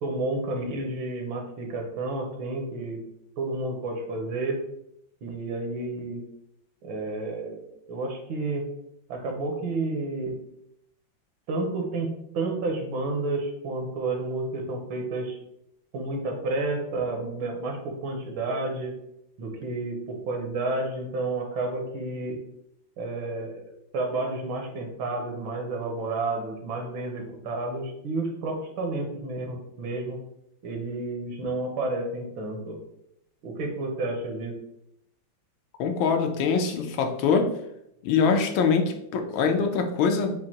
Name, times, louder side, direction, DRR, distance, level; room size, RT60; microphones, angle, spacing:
voice 1, 0.0-3.0 3.4-4.6 5.2-6.2 6.8-7.6 7.9-8.6 9.1-10.4 11.5-15.4 15.9-18.9 19.4-22.4 23.0-23.6 23.9-30.2 30.6-32.8 33.4-34.6, right 2 dB, 80° right, 2 dB, 1.7 m, -30 dB
voice 2, 35.8-37.5 38.0-40.3, left 5 dB, 80° left, 5 dB, 1.4 m, -23 dB
7.5 x 2.5 x 2.8 m, 0.79 s
omnidirectional pair, 2.2 m